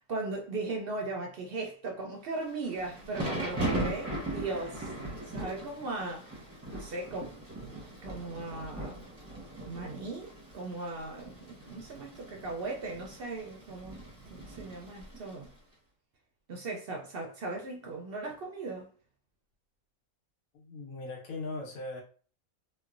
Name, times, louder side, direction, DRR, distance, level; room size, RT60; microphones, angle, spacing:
voice 1, 0.0-4.9 5.2-9.1 9.7-14.0 14.3-15.5 16.5-18.9, right 3 dB, 60° right, 0.6 m, -38 dB
Thunder / Rain, 2.4-15.5, right 1 dB, 15° right, 0.7 m, -39 dB
voice 2, 20.5-22.0, left 2 dB, 80° left, 1.3 m, -39 dB
3.1 x 2.2 x 2.4 m
omnidirectional pair, 1.4 m